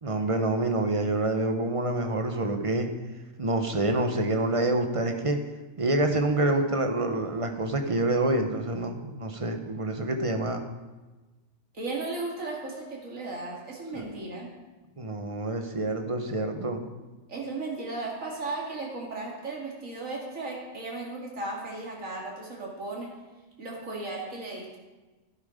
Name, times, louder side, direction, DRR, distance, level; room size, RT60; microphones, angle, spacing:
voice 1, 0.0-2.9 3.4-5.4 5.8-10.7 15.0-16.8, right 2 dB, 25° right, 5 dB, 1.1 m, -27 dB
voice 2, 11.7-14.5 17.3-23.1 23.6-24.8, right 2 dB, 80° right, -3 dB, 2.7 m, -35 dB
11.0 x 11.0 x 5.2 m, 1.2 s
omnidirectional pair, 1.3 m